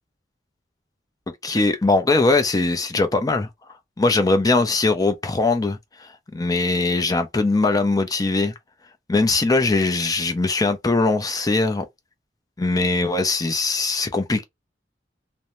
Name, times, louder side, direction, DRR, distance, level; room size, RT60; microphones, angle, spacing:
voice 1, 1.4-3.5 4.0-8.5 9.1-11.9 12.6-14.4, left 3 dB, 20° left, 0.4 m, -21 dB
2.6 x 2.1 x 3.0 m
head